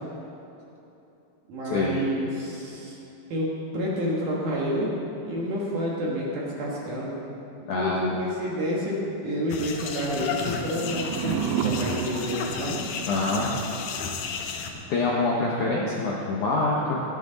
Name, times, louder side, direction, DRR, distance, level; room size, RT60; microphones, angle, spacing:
voice 1, 1.5-3.0 3.3-4.9 5.2-7.1 7.6-12.8, equal, 55° right, -5 dB, 2.5 m, -29 dB
voice 2, 7.7-8.2 13.1-13.5 14.9-17.0, left 3 dB, 70° left, -4 dB, 1.9 m, -25 dB
sound 1, 9.5-14.7, left 5 dB, 85° left, 1.8 m, -33 dB
sound 2, 10.5-13.4, right 8 dB, 85° right, 2.4 m, -31 dB
15.0 x 13.5 x 4.0 m, 2.9 s
omnidirectional pair, 5.1 m